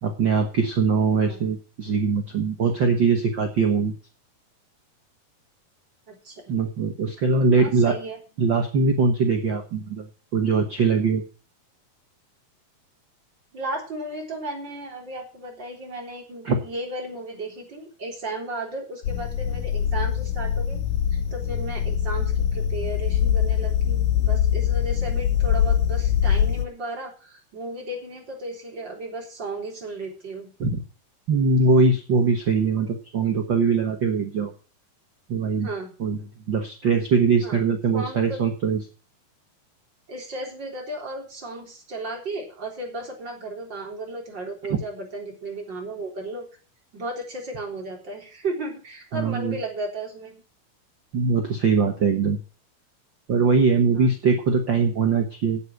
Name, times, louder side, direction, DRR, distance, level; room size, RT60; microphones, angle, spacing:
voice 1, 0.0-3.9 6.5-8.0 8.4-10.1 10.3-11.2 16.4-16.6 30.6-30.8 31.3-34.5 35.3-35.7 36.0-36.2 36.5-38.8 44.7-44.8 49.1-49.6 51.1-52.4 53.3-55.6, right 4 dB, 90° right, 4 dB, 1.0 m, -21 dB
voice 2, 6.1-6.4 7.6-8.2 13.5-20.8 21.3-30.5 35.6-35.9 37.4-37.6 37.9-38.4 40.1-46.5 46.9-50.4 53.8-54.1, right 2 dB, 30° right, 0 dB, 4.2 m, -34 dB
sound 1, 19.0-26.7, left 9 dB, 85° left, 2.6 m, -23 dB
8.6 x 8.1 x 7.7 m, 0.36 s
omnidirectional pair, 4.2 m